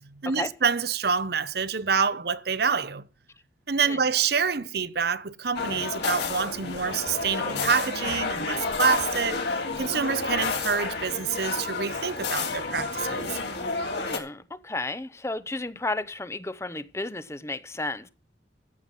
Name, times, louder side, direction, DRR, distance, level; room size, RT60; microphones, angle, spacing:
voice 1, 0.0-3.1 3.7-13.4, right 6 dB, 60° right, 0.8 m, -27 dB
sound 1, 5.5-14.2, left 4 dB, 65° left, 3.1 m, -30 dB
voice 2, 14.0-18.1, left 2 dB, 15° left, 0.8 m, -33 dB
14.5 x 7.9 x 5.9 m
head